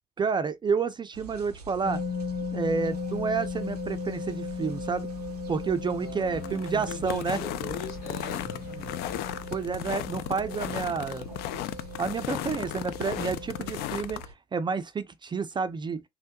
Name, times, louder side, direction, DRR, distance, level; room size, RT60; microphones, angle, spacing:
voice 1, 0.2-2.0 2.5-5.1 5.5-7.4 9.5-11.2 12.0-14.2 14.5-16.0, right 5 dB, 25° right, 0.4 m, -29 dB
sound 1, 1.1-14.3, right 3 dB, 90° right, 0.4 m, -46 dB
sound 2, 1.8-14.0, left 4 dB, 35° left, 1.6 m, -37 dB
sound 3, 2.9-14.3, left 14 dB, 55° left, 0.4 m, -37 dB
voice 2, 5.9-9.1 12.2-12.6, left 4 dB, 75° left, 1.2 m, -41 dB
3.3 x 2.1 x 2.8 m
figure-of-eight pair, 55°, 19 cm